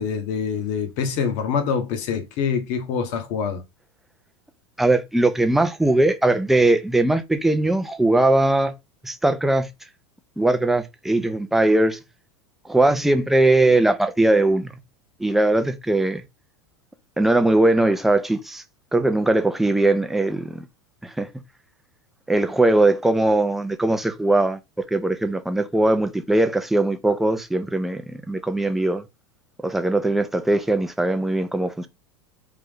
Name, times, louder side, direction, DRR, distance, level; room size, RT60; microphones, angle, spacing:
voice 1, 0.0-3.6, left 6 dB, 55° left, 1.0 m, -25 dB
voice 2, 4.8-8.7 9.0-9.7 10.4-12.0 12.6-14.8 15.2-16.2 17.2-18.6 18.9-20.6 21.0-21.3 22.3-24.6 24.9-28.0 28.3-29.0 29.6-31.9, right 2 dB, ahead, 0.4 m, -20 dB
3.4 x 2.6 x 3.5 m
supercardioid pair, 130°, 14 cm